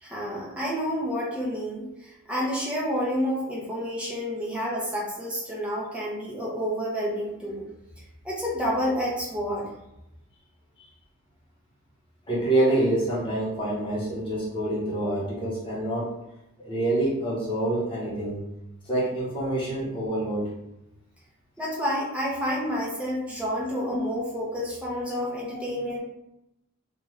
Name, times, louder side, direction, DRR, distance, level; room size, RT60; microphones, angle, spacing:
voice 1, 0.0-7.6 8.2-9.7 21.6-26.0, equal, 5° right, -6 dB, 0.7 m, -29 dB
voice 2, 12.3-16.1 16.6-18.4 18.8-20.5, right 1 dB, 25° left, -6 dB, 0.9 m, -26 dB
2.5 x 2.4 x 3.2 m, 0.86 s
head